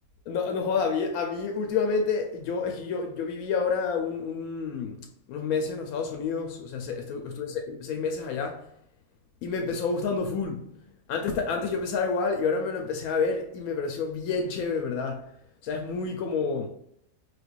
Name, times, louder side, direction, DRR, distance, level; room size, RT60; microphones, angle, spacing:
voice 1, 0.3-8.7 9.4-10.7 11.1-15.3 15.6-16.7, left 5 dB, 90° left, 1.1 m, -29 dB
4.7 x 3.3 x 2.4 m
omnidirectional pair, 1.5 m